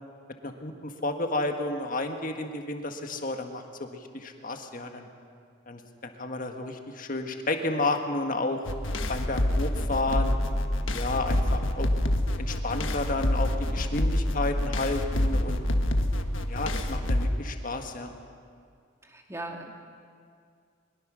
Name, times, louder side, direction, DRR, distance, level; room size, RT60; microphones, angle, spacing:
voice 1, 0.4-5.1 5.7-8.6 9.1-10.4 10.9-11.9 12.4-15.7 16.5-18.1, left 2 dB, 40° left, 5 dB, 1.7 m, -31 dB
sound 1, 8.7-17.3, left 1 dB, 75° left, 1.4 m, -27 dB
voice 2, 19.0-19.7, right 2 dB, 15° right, 2 dB, 2.0 m, -38 dB
22.0 x 21.5 x 6.4 m, 2.2 s
head